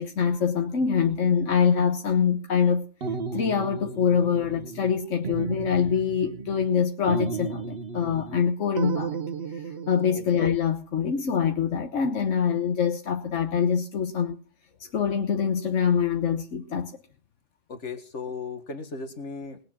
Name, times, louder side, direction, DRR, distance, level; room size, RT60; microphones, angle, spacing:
voice 1, 0.0-2.9 3.3-9.2 9.5-14.4 14.9-16.9, left 7 dB, 90° left, 1.4 m, -24 dB
sound 1, 3.0-5.0 5.2-6.7 7.1-8.4 8.8-10.1, right 5 dB, 55° right, 1.2 m, -33 dB
voice 2, 17.7-19.6, left 4 dB, 70° left, 2.1 m, -36 dB
21.0 x 7.6 x 6.0 m
omnidirectional pair, 1.2 m